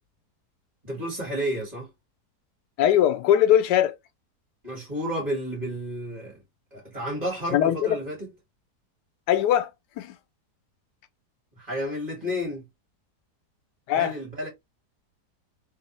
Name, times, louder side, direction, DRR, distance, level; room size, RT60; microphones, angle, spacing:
voice 1, 0.8-1.9 4.6-6.4 6.7-8.3 11.6-12.7 13.9-14.5, equal, 25° right, 2.0 m, -31 dB
voice 2, 2.8-4.0 7.5-8.0 9.3-9.7 10.0-10.2 13.9-14.1, left 11 dB, 85° left, 1.2 m, -21 dB
3.3 x 2.7 x 3.1 m
omnidirectional pair, 1.8 m